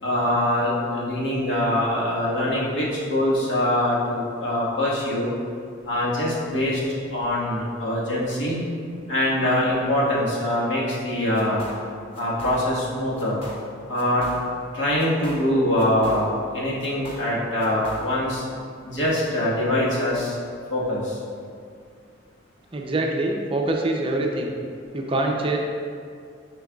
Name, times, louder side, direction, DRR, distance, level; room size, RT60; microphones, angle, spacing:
voice 1, 0.0-5.3 5.8-6.8 7.1-8.6 9.1-11.6 12.2-13.4 13.9-14.3 14.7-16.3 16.5-18.4 18.8-20.3 20.7-21.2, left 1 dB, 75° left, -6 dB, 1.5 m, -23 dB
sound 1, 11.3-11.9 12.1-12.9 13.2-13.7 14.0-14.7 15.0-16.5 16.8-18.3, equal, 30° left, 0.9 m, -40 dB
voice 2, 22.7-24.5 24.9-25.6, right 2 dB, 30° right, 0 dB, 0.5 m, -24 dB
9.8 x 4.6 x 2.3 m, 2.3 s
head